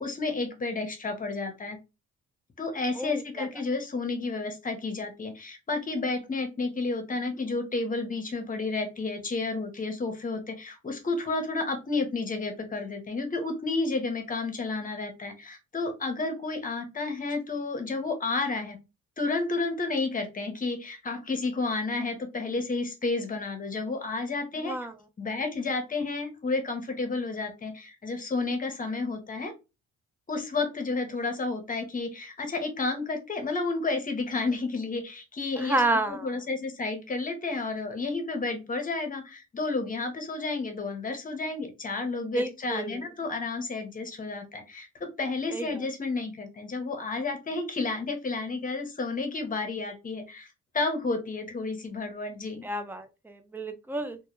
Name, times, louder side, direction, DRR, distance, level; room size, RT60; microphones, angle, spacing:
voice 1, 0.0-1.8 2.6-18.8 19.2-24.8 25.2-29.5 30.3-35.8 36.1-52.6, left 3 dB, 25° left, 5 dB, 0.7 m, -31 dB
voice 2, 3.0-3.5 24.6-24.9 35.6-36.3 42.3-43.0 45.5-45.9 52.6-54.2, right 2 dB, 5° right, 9 dB, 0.4 m, -30 dB
2.2 x 2.1 x 2.9 m, 0.27 s
cardioid pair, 90°, 30 cm